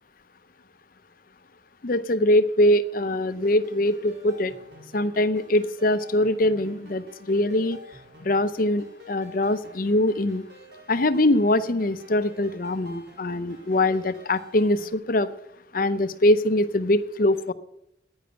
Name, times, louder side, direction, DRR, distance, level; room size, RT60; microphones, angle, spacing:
voice 1, 1.8-4.5 4.9-7.8 8.2-10.4 10.9-15.3 15.7-17.5, left 1 dB, 45° left, 14 dB, 0.6 m, -23 dB
sound 1, 3.3-14.9, equal, 60° right, 3.4 m, -49 dB
10.5 x 9.8 x 8.9 m, 0.79 s
head